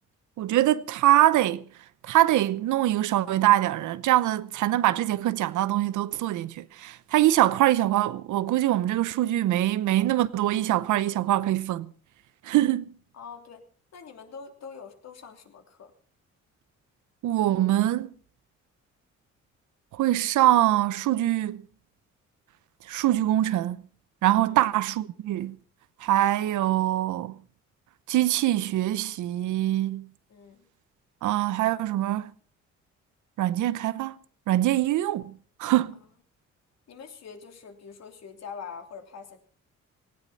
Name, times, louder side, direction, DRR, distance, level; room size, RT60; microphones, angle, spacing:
voice 1, 0.4-1.6 2.0-11.9 12.4-12.9 17.2-18.1 19.9-21.6 22.9-23.8 24.2-25.6 26.0-27.4 28.1-30.1 31.2-32.3 33.4-34.1 34.5-35.3 35.6-36.0, right 14 dB, 80° right, 0.9 m, -23 dB
voice 2, 13.1-13.7 13.9-15.9 24.4-24.6 30.3-30.6 35.9-36.0 36.9-39.4, left 6 dB, 60° left, 3.1 m, -44 dB
18.0 x 16.5 x 4.2 m
cardioid pair, 90°, 30 cm